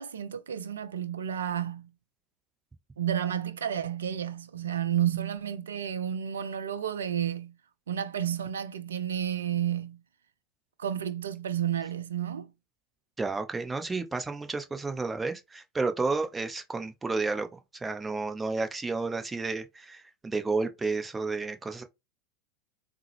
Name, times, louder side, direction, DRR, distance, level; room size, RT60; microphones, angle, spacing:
voice 1, 0.0-1.9 3.0-7.5 7.9-10.0 10.8-12.5, right 10 dB, 80° right, 0.4 m, -31 dB
voice 2, 13.2-21.8, right 3 dB, 15° right, 0.7 m, -31 dB
3.6 x 2.0 x 3.0 m
hypercardioid pair, 90°, 0 cm